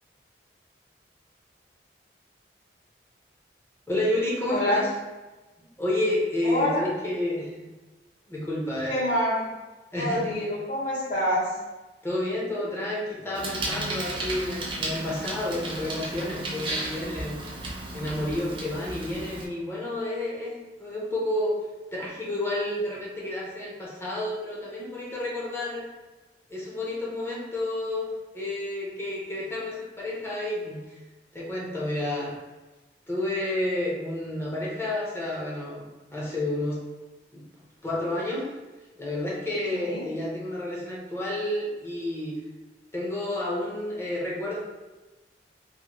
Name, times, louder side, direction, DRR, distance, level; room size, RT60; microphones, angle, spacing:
voice 1, 3.9-4.9 5.8-7.7 8.3-9.0 9.9-10.4 12.0-17.4 17.9-21.6 21.9-25.8 26.5-31.0 31.3-32.3 33.1-36.8 37.3-37.5 37.8-38.5 39.0-42.4 42.9-44.6, left 1 dB, 15° left, -6 dB, 0.7 m, -30 dB
voice 2, 4.5-4.8 6.4-6.8 8.9-9.4 9.9-11.5 39.7-40.0, left 1 dB, 45° left, -9 dB, 1.1 m, -26 dB
Bicycle, 13.3-19.4, right 1 dB, 30° right, 0.5 m, -34 dB
2.8 x 2.6 x 2.9 m, 1.1 s
head